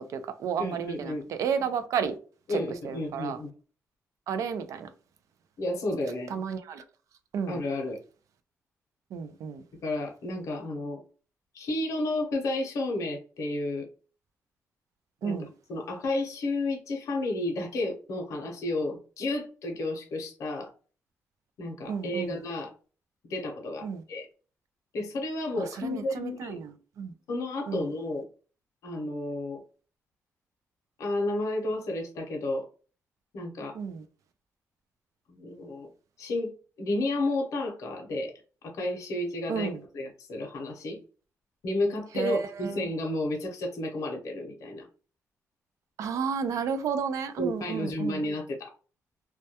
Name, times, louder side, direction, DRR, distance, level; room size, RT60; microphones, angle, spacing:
voice 1, 0.0-2.2 2.8-3.4 4.3-4.9 6.3-6.8 7.3-7.6 9.1-9.6 15.2-15.5 21.9-22.4 23.8-24.0 25.6-27.1 27.7-27.9 33.7-34.0 39.5-39.8 42.1-42.9 46.0-48.2, right 6 dB, 75° right, 0.4 m, -32 dB
voice 2, 0.6-1.2 2.5-3.5 5.6-6.4 7.5-8.0 9.8-11.0 11.5-13.9 15.2-20.7 21.6-22.7 23.3-24.3 24.9-26.6 27.3-28.2 28.8-29.6 31.0-32.7 33.3-33.8 35.3-35.9 36.2-36.5 36.8-38.3 38.6-41.0 41.6-44.9 47.4-48.7, left 2 dB, 75° left, 0.6 m, -32 dB
2.2 x 2.2 x 2.7 m
wide cardioid pair, 150°, 6 cm